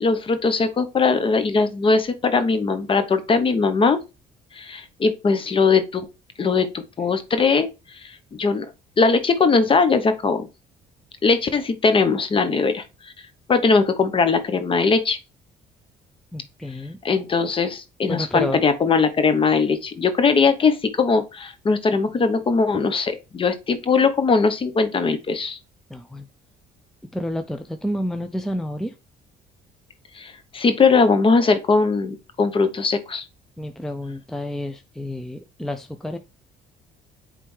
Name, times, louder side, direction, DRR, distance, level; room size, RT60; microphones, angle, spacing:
voice 1, 0.0-4.0 4.6-6.1 6.4-7.7 8.3-8.7 9.0-10.5 11.2-12.8 13.5-15.2 17.0-25.6 30.2-33.2, left 4 dB, 30° left, 0.8 m, -20 dB
voice 2, 16.3-17.0 18.1-18.6 25.9-26.3 27.1-28.9 33.6-36.2, left 1 dB, ahead, 0.5 m, -29 dB
8.8 x 3.3 x 3.2 m
cardioid pair, 110°, 17 cm